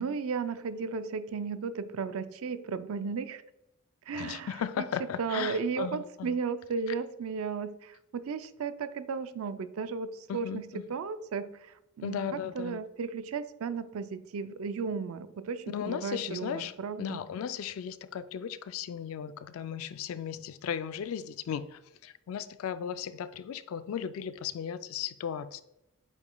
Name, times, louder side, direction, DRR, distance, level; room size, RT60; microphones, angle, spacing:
voice 1, 0.0-3.4 4.1-4.9 5.2-17.2, right 5 dB, 75° right, 11 dB, 0.4 m, -35 dB
voice 2, 4.1-6.4 10.3-10.8 12.0-12.8 15.7-25.6, left 8 dB, 70° left, 13 dB, 0.3 m, -36 dB
8.4 x 4.9 x 2.2 m, 0.87 s
head